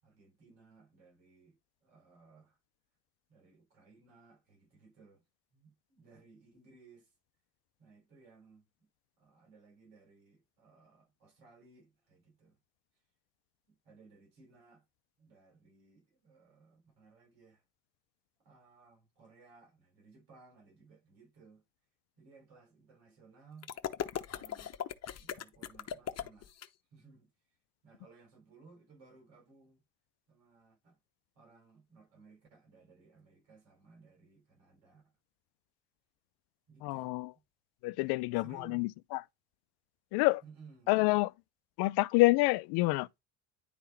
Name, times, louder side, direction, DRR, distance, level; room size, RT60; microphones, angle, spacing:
voice 1, 0.0-2.6 3.3-5.2 5.5-7.1 7.8-8.9 9.2-12.6 13.7-14.9 15.2-17.6 18.4-21.6 22.2-23.7 24.2-24.8 25.2-26.5 26.9-27.3 27.8-29.8 30.3-31.0 31.3-35.1 36.7-37.4 38.0-38.8 40.4-41.0, right 4 dB, 75° right, 6.0 m, -60 dB
sound 1, 23.6-26.7, left 9 dB, 35° left, 1.1 m, -39 dB
voice 2, 36.8-37.3 37.8-39.2 40.1-40.4 40.9-41.3 41.8-43.2, left 21 dB, 60° left, 0.6 m, -28 dB
10.5 x 3.7 x 4.3 m
hypercardioid pair, 80°, 44 cm